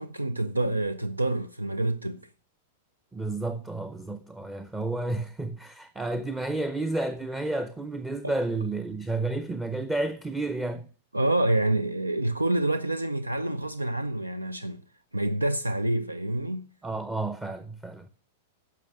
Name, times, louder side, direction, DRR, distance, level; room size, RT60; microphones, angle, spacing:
voice 1, 0.0-2.2 8.2-8.3 11.1-14.8 15.1-16.7, right 1 dB, 85° right, 0.5 m, -27 dB
voice 2, 3.1-10.9 16.8-18.1, right 2 dB, 10° right, 0.6 m, -31 dB
10.5 x 6.6 x 6.1 m
figure-of-eight pair, 95°, 0 cm